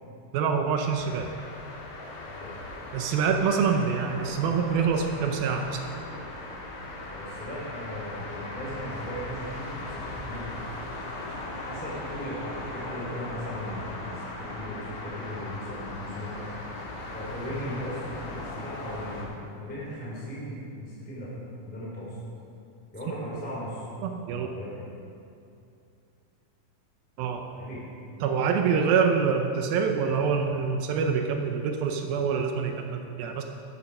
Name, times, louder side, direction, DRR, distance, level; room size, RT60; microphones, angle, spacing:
voice 1, 0.3-1.3 2.9-5.8 24.0-24.5 27.2-27.4 28.2-33.4, right 6 dB, 80° right, 4 dB, 2.3 m, -26 dB
sound 1, 1.0-19.3, left 2 dB, 90° left, 4.4 m, -38 dB
voice 2, 7.1-10.6 11.5-16.5 17.1-21.3 21.7-22.2 22.9-23.8 24.3-24.8 27.5-27.9, equal, 5° left, -7 dB, 2.2 m, -37 dB
14.0 x 8.8 x 5.4 m, 2.6 s
omnidirectional pair, 4.8 m